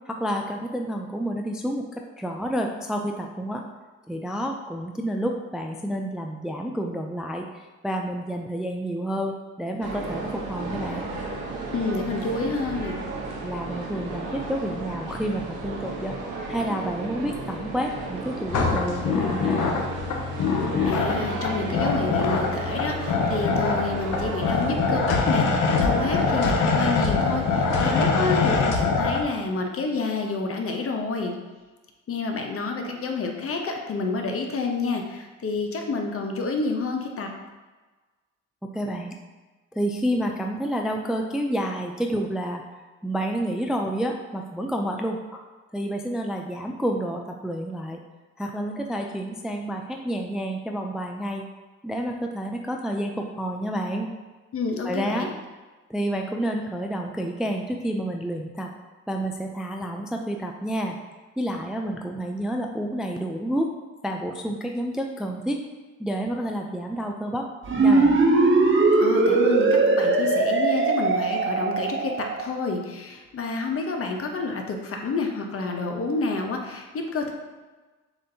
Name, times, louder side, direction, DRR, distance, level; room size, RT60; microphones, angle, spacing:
voice 1, 0.1-3.6 4.1-11.1 13.4-16.2 16.5-19.6 38.7-39.1 39.7-42.6 43.0-45.2 45.7-48.0 48.4-51.4 51.8-54.1 54.8-55.3 55.9-58.7 59.1-61.0 61.4-63.7 64.0-65.6 66.0-67.5 67.8-68.2, equal, ahead, 3 dB, 0.3 m, -29 dB
sound 1, 9.8-28.6, right 2 dB, 75° right, 1.0 m, -33 dB
voice 2, 11.7-13.0 20.8-31.3 32.1-37.3 54.5-55.3 69.0-77.3, left 3 dB, 45° left, 3 dB, 0.8 m, -29 dB
sound 2, 18.5-29.2, left 4 dB, 75° left, 0.7 m, -24 dB
sound 3, 67.6-72.4, right 3 dB, 40° right, 0.6 m, -20 dB
7.0 x 2.6 x 2.7 m, 1.3 s
cardioid pair, 75°, 31 cm